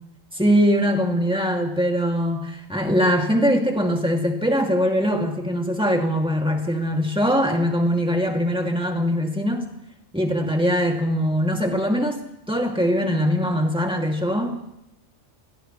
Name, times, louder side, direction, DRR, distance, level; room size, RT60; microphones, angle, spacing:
voice 1, 0.3-9.7 10.1-12.2 12.5-14.8, equal, 5° right, 1 dB, 2.1 m, -22 dB
26.5 x 17.0 x 3.1 m, 0.82 s
omnidirectional pair, 1.3 m